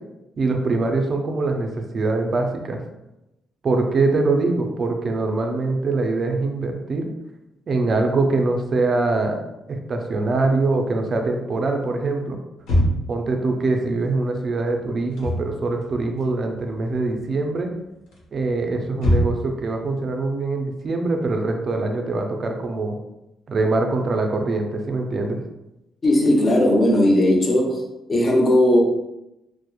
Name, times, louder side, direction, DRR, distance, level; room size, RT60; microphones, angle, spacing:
voice 1, 0.4-2.8 3.6-7.1 7.7-9.4 9.7-12.4 13.1-17.7 18.3-23.0 23.5-25.4, right 3 dB, 45° right, 3 dB, 0.4 m, -23 dB
sound 1, 12.6-13.2 15.0-15.5 15.8-16.8 17.0-17.5 18.1-19.6, equal, 85° left, 0.7 m, -23 dB
voice 2, 26.0-27.8 28.1-28.8, left 1 dB, 35° left, -1 dB, 0.6 m, -17 dB
2.8 x 2.0 x 2.2 m, 0.92 s
cardioid pair, 90°, 0 cm